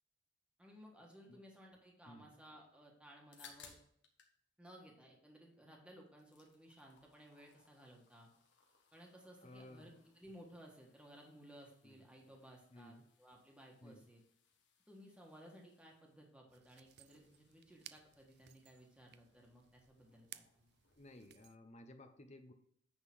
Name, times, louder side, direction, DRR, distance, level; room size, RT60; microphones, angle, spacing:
voice 1, 0.6-3.8 4.6-8.3 8.9-14.2 14.9-20.7, equal, 5° right, -1 dB, 1.5 m, -59 dB
sound 1, 3.3-4.4 4.7-5.7 6.0-21.5, left 6 dB, 65° left, 1.4 m, -67 dB
voice 2, 9.4-9.9 11.8-12.0 12.7-13.0 13.8-14.1 21.0-22.5, left 1 dB, 35° left, 7 dB, 0.8 m, -56 dB
sound 2, 16.5-21.6, right 13 dB, 60° right, 0.4 m, -60 dB
9.4 x 3.9 x 6.0 m, 0.67 s
head